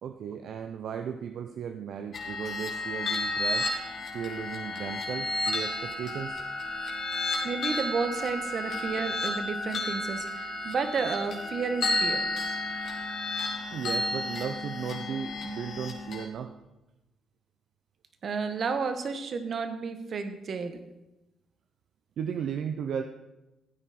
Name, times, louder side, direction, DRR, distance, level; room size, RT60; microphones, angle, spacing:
voice 1, 0.0-3.7 4.1-6.4 13.7-16.5 22.2-23.0, right 7 dB, 70° right, 7 dB, 0.7 m, -35 dB
sound 1, 2.1-16.2, left 2 dB, 55° left, 2.6 m, -32 dB
voice 2, 7.4-12.2 18.2-20.8, right 5 dB, 50° right, 9 dB, 1.3 m, -31 dB
15.0 x 9.1 x 4.3 m, 0.98 s
cardioid pair, 90°, 0 cm